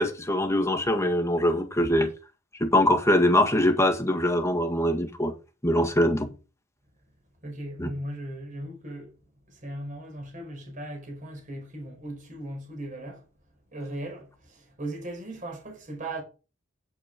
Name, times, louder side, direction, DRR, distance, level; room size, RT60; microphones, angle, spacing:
voice 1, 0.0-2.1 2.6-5.3 5.6-6.3 7.8-7.9, left 1 dB, 15° left, 1.8 m, -23 dB
voice 2, 7.4-9.1 9.5-13.2 13.7-16.2, right 1 dB, 40° right, 4.6 m, -37 dB
9.1 x 8.6 x 5.2 m
head